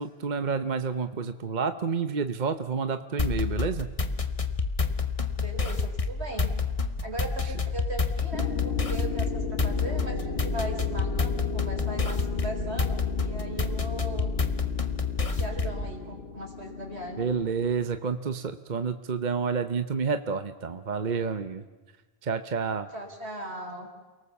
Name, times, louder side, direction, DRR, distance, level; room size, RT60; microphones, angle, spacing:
voice 1, 0.0-3.9 17.2-21.6 22.2-22.9, right 5 dB, 45° right, 10 dB, 1.0 m, -29 dB
sound 1, 3.2-15.9, left 4 dB, 35° left, 1.3 m, -28 dB
voice 2, 5.3-6.5 7.0-14.3 15.3-17.3 22.9-23.9, right 1 dB, 75° right, 3 dB, 4.2 m, -38 dB
sound 2, 8.3-17.8, left 5 dB, 70° left, 1.6 m, -35 dB
29.0 x 19.0 x 7.1 m, 1.3 s
omnidirectional pair, 1.1 m